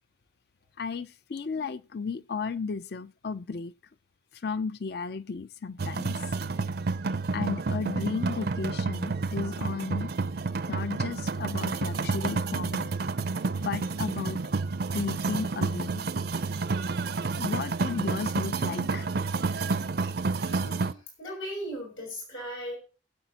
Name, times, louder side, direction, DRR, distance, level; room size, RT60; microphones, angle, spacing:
voice 1, 0.8-3.7 4.3-6.2 7.3-10.1 10.7-13.0 13.5-14.4 14.9-16.0 17.0-17.1 17.4-19.1, left 5 dB, 55° left, 0.5 m, -34 dB
sound 1, 5.8-20.9, right 4 dB, 50° right, 0.5 m, -30 dB
voice 2, 20.4-22.8, equal, 85° left, 6.7 m, -38 dB
22.5 x 8.1 x 2.8 m
head